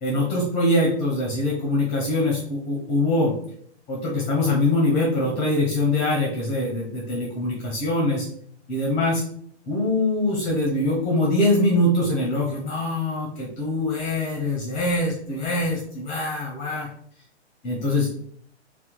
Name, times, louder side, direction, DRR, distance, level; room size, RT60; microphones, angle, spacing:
voice 1, 0.0-3.3 3.9-8.3 8.7-9.2 9.7-16.9 17.6-18.1, left 1 dB, 20° left, -1 dB, 0.7 m, -23 dB
2.8 x 2.2 x 3.7 m, 0.62 s
figure-of-eight pair, 120°, 35 cm